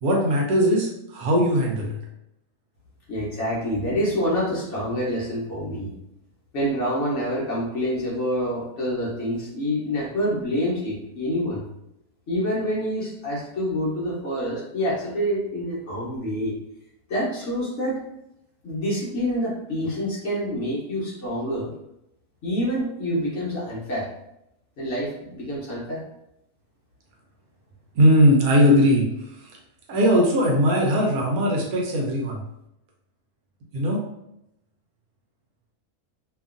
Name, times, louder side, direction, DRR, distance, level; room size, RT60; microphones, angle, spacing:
voice 1, 0.0-1.9 27.9-29.1 29.4-29.6 29.9-32.4 33.7-34.0, equal, 75° right, -1 dB, 1.1 m, -19 dB
voice 2, 3.1-5.9 6.5-11.6 12.3-16.5 17.1-18.0 18.6-21.7 22.4-24.1 24.8-26.0, equal, 55° left, -6 dB, 1.1 m, -27 dB
2.8 x 2.4 x 2.4 m, 0.83 s
omnidirectional pair, 1.6 m